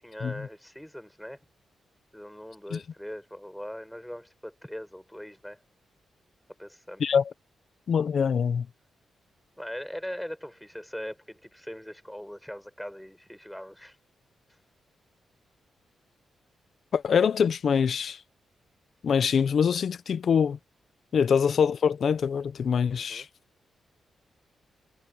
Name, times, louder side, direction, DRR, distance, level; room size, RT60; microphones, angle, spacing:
voice 1, 0.0-1.4 2.1-5.6 6.6-7.2 9.6-14.0 23.0-23.3, equal, 5° left, 8.0 m, -41 dB
voice 2, 7.9-8.7 16.9-18.2 19.0-20.6 21.1-23.3, left 7 dB, 65° left, 0.9 m, -24 dB
cardioid pair, 90°, 0 cm